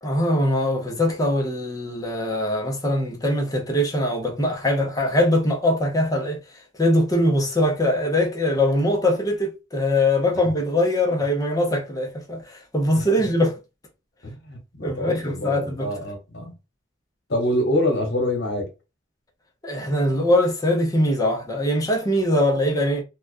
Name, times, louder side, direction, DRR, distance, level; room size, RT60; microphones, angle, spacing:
voice 1, 0.0-6.4 6.7-13.6 14.8-15.9 19.6-23.0, left 1 dB, 20° left, 0.6 m, -22 dB
voice 2, 14.2-16.5 17.3-18.7, left 1 dB, 65° left, 1.1 m, -26 dB
2.3 x 2.3 x 2.4 m
head